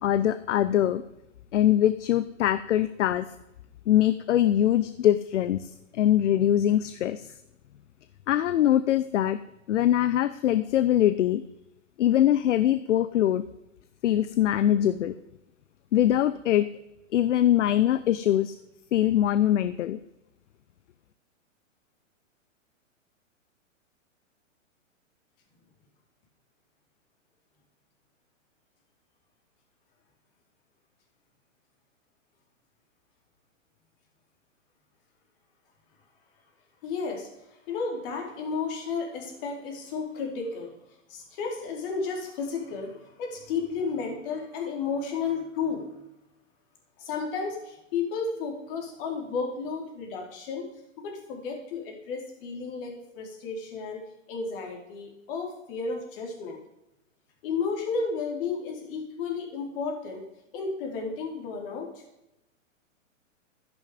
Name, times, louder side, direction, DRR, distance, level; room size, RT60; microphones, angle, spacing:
voice 1, 0.0-1.0 1.5-3.3 3.9-7.3 8.3-9.4 9.7-11.4 12.0-13.4 14.0-15.1 15.9-16.7 17.1-18.5 18.9-20.0, left 11 dB, 65° left, 13 dB, 0.8 m, -23 dB
voice 2, 36.8-40.7 41.1-45.9 47.0-50.7 51.0-56.6 57.4-60.3 60.5-61.9, left 5 dB, 45° left, 2 dB, 4.3 m, -33 dB
13.0 x 10.5 x 5.2 m, 0.89 s
hypercardioid pair, 140°, 39 cm